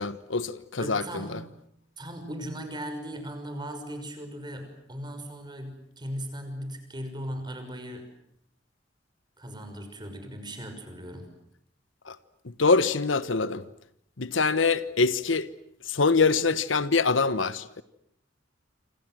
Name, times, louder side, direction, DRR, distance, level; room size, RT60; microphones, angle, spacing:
voice 1, 0.0-1.4 12.1-12.2 12.4-13.7 14.2-15.5 15.8-17.8, left 4 dB, 80° left, 1.2 m, -24 dB
voice 2, 0.8-1.4 2.0-8.1 9.4-11.3, equal, 25° right, 6.1 m, -38 dB
27.5 x 27.0 x 7.7 m
head